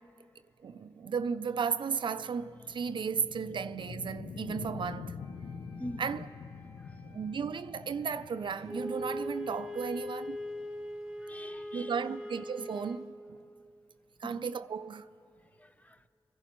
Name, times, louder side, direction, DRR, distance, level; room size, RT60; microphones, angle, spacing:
voice 1, 0.6-5.2 6.0-6.3 7.1-10.4 11.7-13.4 14.2-15.1, right 6 dB, 65° right, 0.3 m, -34 dB
sound 1, 1.1-11.8, left 5 dB, 75° left, 0.4 m, -46 dB
Wind instrument woodwind instrument, 5.2-10.3, equal, 40° left, 1.5 m, -61 dB
voice 2, 5.8-6.1 6.8-7.0 11.2-12.2 14.2-14.4 15.4-16.1, equal, 15° left, 0.4 m, -45 dB
Wind instrument woodwind instrument 2, 8.6-13.1, left 1 dB, 5° right, 1.2 m, -40 dB
29.0 x 11.5 x 3.0 m
cardioid pair, 70°, 9 cm